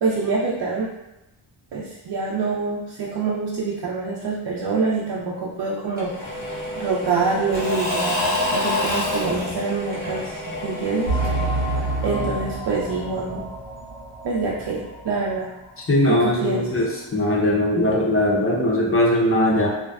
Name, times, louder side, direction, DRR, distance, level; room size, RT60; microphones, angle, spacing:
voice 1, 0.0-0.9 1.7-6.5 6.7-11.2 12.0-13.4 14.2-15.5 16.1-16.7, right 4 dB, 55° right, -5 dB, 0.5 m, -26 dB
Engine / Mechanisms / Drill, 6.0-12.6, left 1 dB, 20° right, 0.9 m, -28 dB
sound 1, 11.1-15.3 15.7-15.8 16.3-16.4, right 2 dB, 85° left, 1.0 m, -28 dB
voice 2, 15.9-19.7, left 1 dB, 25° left, -3 dB, 0.6 m, -20 dB
2.5 x 2.2 x 2.2 m, 0.94 s
wide cardioid pair, 75°, 50 cm